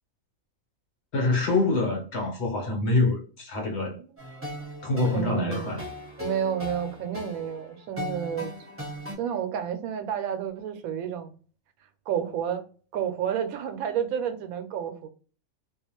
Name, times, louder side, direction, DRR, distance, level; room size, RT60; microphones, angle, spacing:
voice 1, 1.1-4.0 4.8-5.8, left 2 dB, 55° left, 1.1 m, -25 dB
voice 2, 3.8-4.6 5.1-5.8 6.2-8.5 9.2-11.3 12.1-12.6 12.9-15.1, right 9 dB, 85° right, 1.0 m, -31 dB
sound 1, 4.2-9.1, left 1 dB, 10° right, 1.1 m, -38 dB
2.4 x 2.3 x 2.9 m
omnidirectional pair, 1.4 m